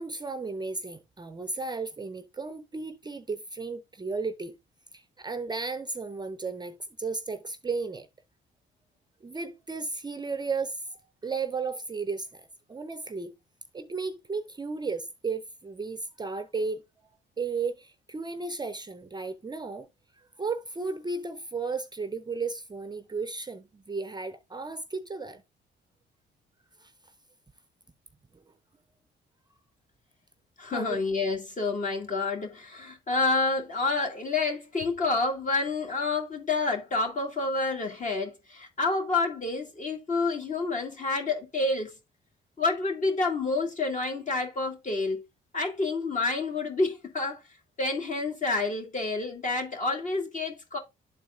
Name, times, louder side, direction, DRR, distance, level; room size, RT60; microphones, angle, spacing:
voice 1, 0.0-4.6 4.9-8.1 9.2-10.8 11.2-13.3 13.7-16.8 17.4-19.9 20.2-25.4 26.8-26.9 30.7-31.0, right 4 dB, 20° right, 0.5 m, -34 dB
voice 2, 30.6-41.9 42.6-45.2 45.5-47.4 47.8-50.8, left 3 dB, 40° left, 2.0 m, -28 dB
12.0 x 4.0 x 2.4 m
cardioid pair, 90°, 20 cm